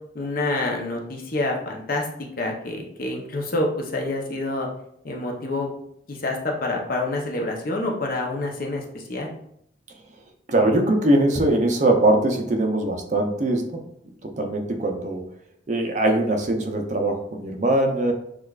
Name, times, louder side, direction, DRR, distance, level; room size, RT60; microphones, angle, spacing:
voice 1, 0.1-2.1 2.4-4.7 5.0-5.7 6.1-9.3, left 2 dB, 50° left, 0 dB, 0.7 m, -27 dB
voice 2, 10.5-13.8 14.2-15.2 15.7-18.1, right 1 dB, 40° right, 4 dB, 0.5 m, -21 dB
6.4 x 2.3 x 2.3 m, 0.72 s
head